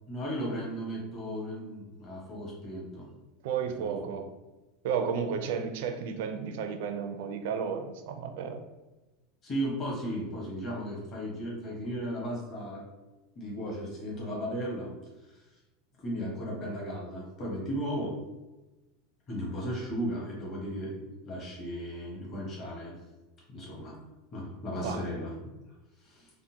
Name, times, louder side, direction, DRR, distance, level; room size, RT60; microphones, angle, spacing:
voice 1, 0.1-3.1 3.8-4.2 9.4-12.8 13.4-14.9 16.0-18.2 19.3-22.9 23.5-24.0 24.3-25.3 26.0-26.3, equal, 30° left, -4 dB, 1.0 m, -35 dB
voice 2, 3.4-4.3 4.8-8.6 24.8-25.0, right 6 dB, 70° right, 7 dB, 0.4 m, -32 dB
3.6 x 2.1 x 2.7 m, 1.1 s
supercardioid pair, 145°, 0 cm